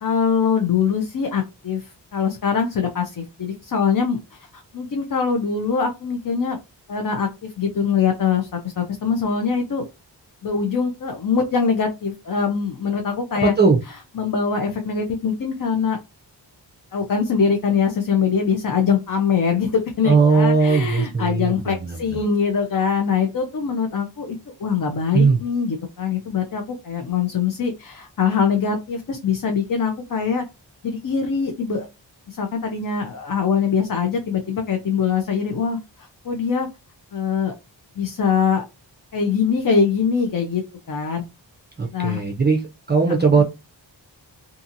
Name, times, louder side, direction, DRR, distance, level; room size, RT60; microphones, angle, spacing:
voice 1, 0.0-6.6 6.9-9.8 10.4-13.5 14.1-16.0 16.9-30.4 30.8-31.9 32.3-36.7 37.1-37.5 38.0-38.6 39.1-41.2 41.9-42.2 43.3-43.4, left 6 dB, 50° left, 4 dB, 0.5 m, -23 dB
voice 2, 13.4-13.8 20.0-22.2 25.1-25.4 41.8-42.6 42.9-43.4, right 4 dB, 25° right, 0 dB, 0.4 m, -18 dB
2.7 x 2.6 x 2.5 m, 0.25 s
wide cardioid pair, 80°, 45 cm